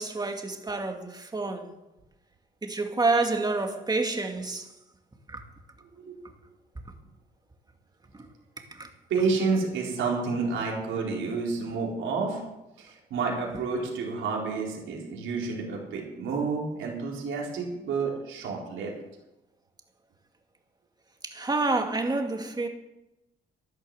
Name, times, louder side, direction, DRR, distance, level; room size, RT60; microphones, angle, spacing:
voice 1, 0.0-1.8 2.6-4.7 5.3-5.4 8.1-8.3 8.6-8.9 21.2-22.7, right 3 dB, 20° right, 2.3 m, -28 dB
voice 2, 9.1-12.4 12.8-18.9, right 4 dB, 80° right, 4.3 m, -29 dB
12.0 x 11.0 x 7.8 m
cardioid pair, 90°, 20 cm